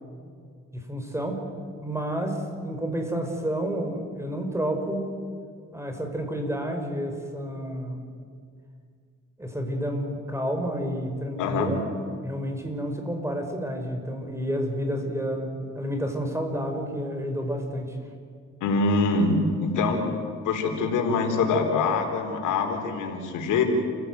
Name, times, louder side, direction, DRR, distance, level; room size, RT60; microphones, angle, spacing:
voice 1, 0.7-1.5 1.8-5.1 5.7-8.0 9.4-11.8 12.2-18.0, equal, 10° right, 4 dB, 5.2 m, -30 dB
voice 2, 18.6-20.1 20.4-23.6, left 4 dB, 85° left, 4 dB, 3.8 m, -24 dB
28.5 x 16.5 x 9.4 m, 2.1 s
cardioid pair, 90°, 30 cm